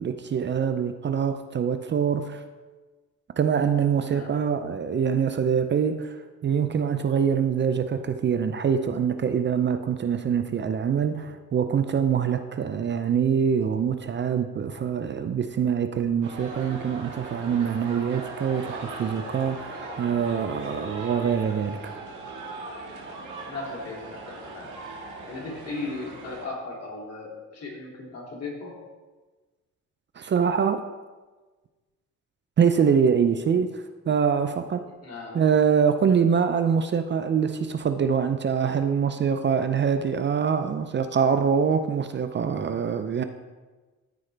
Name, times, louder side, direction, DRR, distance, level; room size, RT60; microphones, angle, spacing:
voice 1, 0.0-2.4 3.4-22.0 30.2-30.8 32.6-34.9 35.3-43.2, right 7 dB, 40° right, 9 dB, 0.5 m, -24 dB
sound 1, 16.2-26.5, right 2 dB, 80° right, 1.8 m, -39 dB
voice 2, 23.5-24.7 25.3-28.7 35.0-35.4, left 3 dB, 55° left, -3 dB, 2.7 m, -37 dB
13.0 x 4.8 x 3.3 m, 1.3 s
cardioid pair, 90°, 30 cm